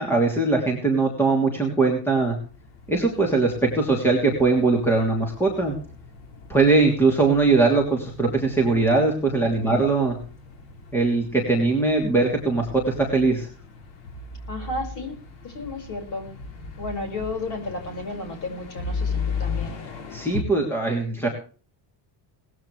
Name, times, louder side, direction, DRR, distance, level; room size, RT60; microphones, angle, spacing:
voice 1, 0.0-2.4 2.9-5.8 6.5-10.1 10.9-13.5 20.1-21.3, right 3 dB, 5° left, 1 dB, 3.0 m, -21 dB
sound 1, 2.2-20.4, left 5 dB, 65° left, 5.4 m, -37 dB
voice 2, 14.5-15.1 15.4-16.3 16.8-19.8, left 2 dB, 40° left, 5 dB, 5.9 m, -33 dB
19.5 x 15.0 x 3.3 m, 0.39 s
cardioid pair, 180°, 50 cm